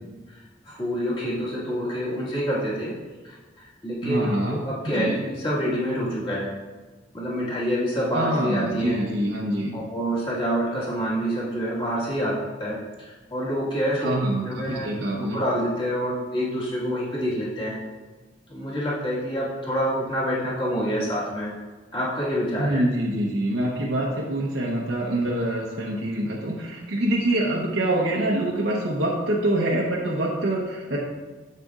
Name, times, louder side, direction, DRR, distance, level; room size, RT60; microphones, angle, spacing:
voice 1, 0.3-2.9 3.2-6.5 7.1-9.1 9.7-14.1 14.4-14.9 15.2-17.8 18.5-21.5 21.9-22.8, equal, 25° left, -7 dB, 1.7 m, -27 dB
voice 2, 4.0-5.2 8.1-9.7 14.0-15.4 22.6-31.0, right 1 dB, 85° right, -4 dB, 0.9 m, -25 dB
7.5 x 6.7 x 2.4 m, 1.3 s
head